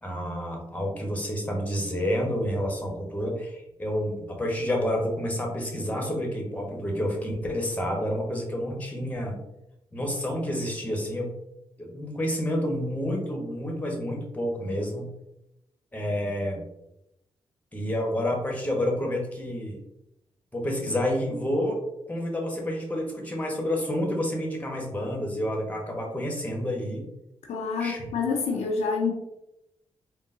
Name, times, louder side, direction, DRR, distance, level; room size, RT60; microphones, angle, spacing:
voice 1, 0.0-9.4 9.9-11.3 11.9-15.1 15.9-16.7 17.7-19.8 20.5-27.0 27.8-28.0, equal, 15° left, 0 dB, 1.2 m, -29 dB
voice 2, 27.5-29.1, left 4 dB, 70° left, 0 dB, 0.6 m, -27 dB
3.7 x 2.2 x 2.6 m, 0.84 s
supercardioid pair, 45°, 12 cm